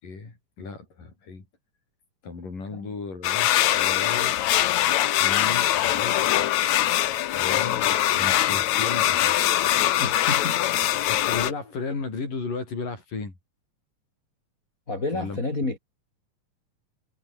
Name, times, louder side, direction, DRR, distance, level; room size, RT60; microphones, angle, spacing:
voice 1, 0.0-1.5 2.2-4.3 5.2-6.3 7.3-9.4 11.1-13.3 15.1-15.4, left 4 dB, 85° left, 8.6 m, -35 dB
sound 1, 3.2-11.5, left 13 dB, 65° left, 2.2 m, -22 dB
voice 2, 10.0-10.6 14.9-15.8, left 2 dB, 25° left, 5.0 m, -30 dB
omnidirectional pair, 3.7 m